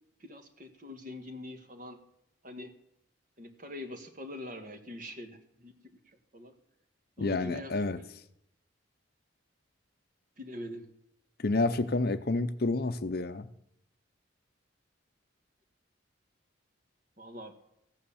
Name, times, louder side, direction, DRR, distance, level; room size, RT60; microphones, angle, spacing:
voice 1, 0.2-2.0 2.4-2.7 3.4-6.6 7.2-8.1 10.4-10.9 17.2-17.5, left 1 dB, 40° right, 6 dB, 1.6 m, -44 dB
voice 2, 7.2-8.0 11.4-13.5, left 2 dB, 50° left, 11 dB, 0.7 m, -29 dB
15.0 x 9.5 x 7.2 m, 0.76 s
head